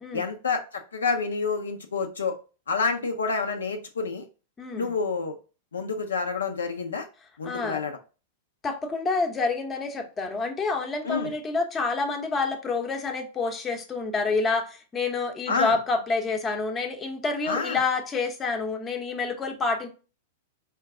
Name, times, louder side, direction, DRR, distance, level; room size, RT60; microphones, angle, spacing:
voice 1, 0.1-2.4 2.7-4.2 4.8-5.4 5.7-7.1 7.4-8.0 11.0-11.3 15.5-15.8 17.5-17.8, left 4 dB, 75° left, 5 dB, 0.5 m, -28 dB
voice 2, 4.6-4.9 7.4-7.8 8.6-19.9, left 4 dB, 20° left, 4 dB, 0.8 m, -28 dB
4.5 x 2.3 x 3.5 m, 0.34 s
figure-of-eight pair, 100°, 0 cm